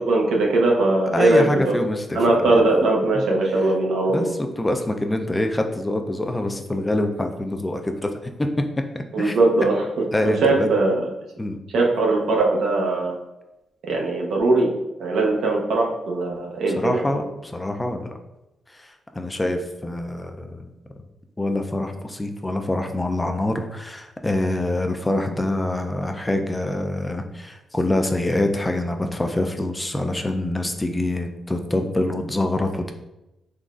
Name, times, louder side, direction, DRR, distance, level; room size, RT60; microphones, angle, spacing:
voice 1, 0.0-1.8 2.1-4.3 9.1-11.1 11.7-13.2 13.9-14.7 15.0-17.0, right 2 dB, 85° right, -1 dB, 0.7 m, -20 dB
voice 2, 1.1-2.5 3.1-3.2 4.1-8.1 8.9-9.3 10.1-10.7 11.4-11.6 16.8-18.2 18.8-18.9 19.1-20.7 21.4-32.9, left 1 dB, 15° left, 5 dB, 0.4 m, -25 dB
3.8 x 3.1 x 2.4 m, 0.95 s
cardioid pair, 85°, 0 cm